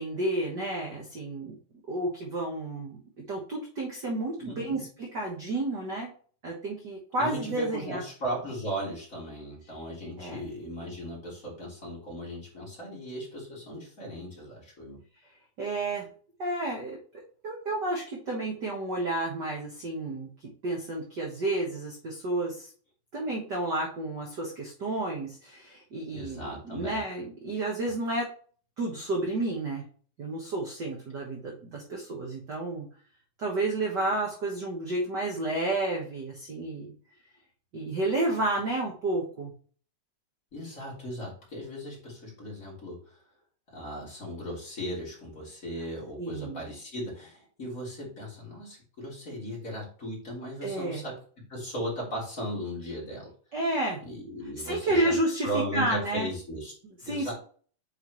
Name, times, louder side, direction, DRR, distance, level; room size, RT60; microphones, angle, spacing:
voice 1, 0.0-1.6 1.9-3.0 3.3-6.1 6.4-8.0 10.2-10.4 15.6-16.1 16.4-17.0 17.4-20.3 20.6-22.7 23.1-28.3 28.8-29.8 30.2-32.9 33.4-36.9 37.7-39.5 46.2-46.6 50.6-51.0 53.5-54.0 54.6-56.3 57.0-57.3, right 2 dB, 45° right, -1 dB, 1.7 m, -31 dB
voice 2, 4.4-4.8 7.2-15.0 26.1-27.0 40.5-43.0 43.7-53.3 54.0-55.1 55.4-56.7 57.1-57.3, equal, 25° left, -4 dB, 3.8 m, -37 dB
8.9 x 4.9 x 3.1 m, 0.43 s
omnidirectional pair, 3.3 m